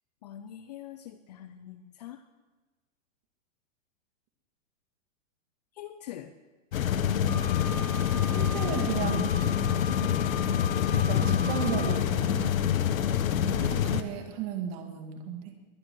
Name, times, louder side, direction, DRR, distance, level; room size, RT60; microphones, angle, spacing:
voice 1, 0.2-2.2 5.8-6.3, left 11 dB, 30° left, 11 dB, 0.5 m, -44 dB
sound 1, 6.7-14.0, left 9 dB, 85° left, 1.2 m, -26 dB
Wind instrument woodwind instrument, 7.3-12.0, left 4 dB, 5° left, 0.9 m, -40 dB
voice 2, 8.3-9.4 10.9-12.3 13.6-15.6, right 9 dB, 35° right, 5 dB, 2.3 m, -35 dB
22.0 x 8.9 x 6.4 m, 1.3 s
hypercardioid pair, 160°, 40 cm